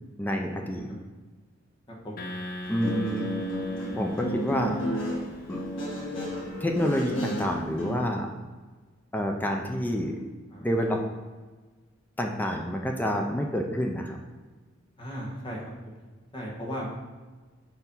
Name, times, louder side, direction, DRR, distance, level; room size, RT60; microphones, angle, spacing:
voice 1, 0.2-0.9 2.7-3.3 3.9-4.8 5.5-5.6 6.6-8.3 9.1-10.2 10.6-11.0 12.2-14.2, equal, 10° left, 2 dB, 0.4 m, -28 dB
sound 1, 2.2-5.6, left 1 dB, 50° left, 0.7 m, -41 dB
Guitar, 2.6-8.0, equal, 75° left, 1.5 m, -32 dB
voice 2, 10.5-11.0 15.0-15.6 16.3-17.0, equal, 25° left, -3 dB, 1.3 m, -36 dB
4.5 x 4.5 x 5.4 m, 1.4 s
head